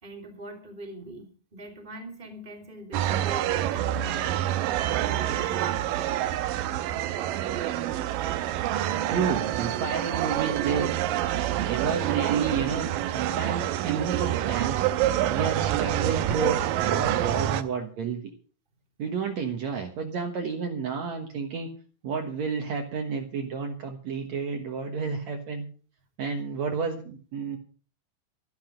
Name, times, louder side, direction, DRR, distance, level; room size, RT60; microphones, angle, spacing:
voice 1, 0.0-6.2, right 2 dB, 15° right, 3 dB, 2.9 m, -43 dB
sound 1, 2.9-17.6, right 12 dB, 85° right, 2.5 m, -27 dB
voice 2, 9.1-11.0 11.6-14.9 15.3-18.2 19.0-21.7 22.0-25.7 26.2-27.6, right 5 dB, 60° right, 3 dB, 2.4 m, -31 dB
13.0 x 12.0 x 5.1 m, 0.40 s
omnidirectional pair, 3.9 m